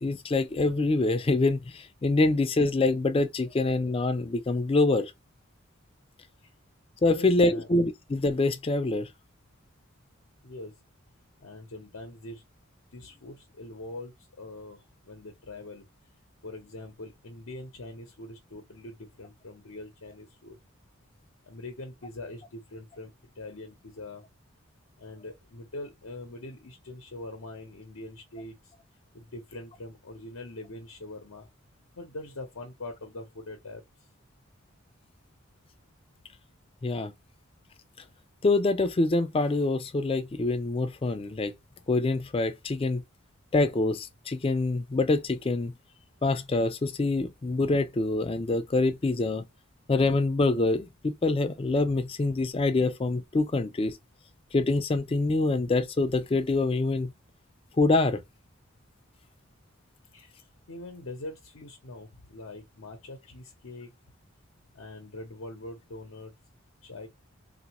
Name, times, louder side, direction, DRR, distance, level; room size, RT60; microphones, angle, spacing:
voice 1, 0.0-5.1 7.0-9.1 36.8-37.1 38.4-41.5 41.9-43.0 43.5-45.7 46.2-49.4 49.9-54.0 54.5-57.1 57.8-58.2, left 2 dB, 25° left, 0.3 m, -25 dB
voice 2, 7.1-7.7 10.4-10.7 11.4-12.4 12.9-15.8 16.4-20.6 21.5-24.2 25.0-28.7 29.1-31.5 31.9-33.8 60.1-60.4 60.7-63.9 64.7-66.3 66.8-67.1, left 2 dB, 75° left, 0.8 m, -43 dB
3.4 x 2.4 x 2.9 m
head